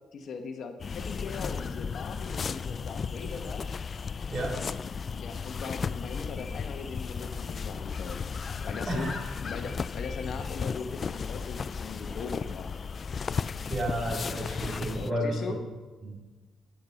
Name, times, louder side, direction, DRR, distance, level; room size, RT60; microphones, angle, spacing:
voice 1, 0.1-3.6 5.2-8.3 8.6-12.7 15.1-15.6, left 5 dB, 60° left, 6 dB, 1.2 m, -40 dB
sound 1, 0.8-15.1, left 5 dB, 45° left, 0.3 m, -35 dB
voice 2, 8.9-9.2 13.7-15.6 16.0-16.2, right 1 dB, 45° right, -2 dB, 3.9 m, -31 dB
10.0 x 8.6 x 5.8 m, 1.3 s
cardioid pair, 90°, 0 cm